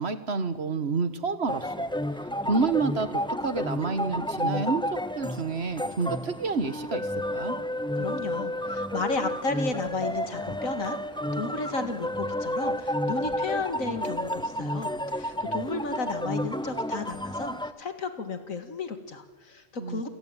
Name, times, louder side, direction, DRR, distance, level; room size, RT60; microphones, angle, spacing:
voice 1, 0.0-1.7 2.5-4.8 5.2-7.6 19.8-20.0, right 4 dB, 55° right, 11 dB, 1.7 m, -29 dB
sound 1, 1.5-17.7, left 1 dB, 5° left, 0.5 m, -31 dB
voice 2, 8.0-11.0 11.3-20.1, left 3 dB, 85° left, 8 dB, 2.5 m, -33 dB
28.0 x 17.0 x 9.1 m, 1.4 s
omnidirectional pair, 1.4 m